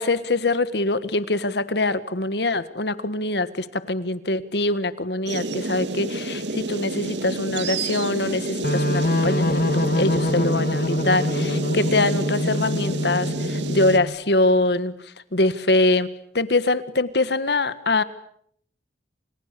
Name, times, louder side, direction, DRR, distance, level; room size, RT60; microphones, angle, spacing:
voice 1, 0.0-16.1 16.3-18.0, left 2 dB, 70° left, 14 dB, 1.7 m, -23 dB
sound 1, 5.3-14.0, right 2 dB, 80° right, 2.2 m, -30 dB
sound 2, 8.6-14.1, left 1 dB, 55° left, 1.8 m, -24 dB
29.5 x 28.0 x 6.9 m, 0.68 s
head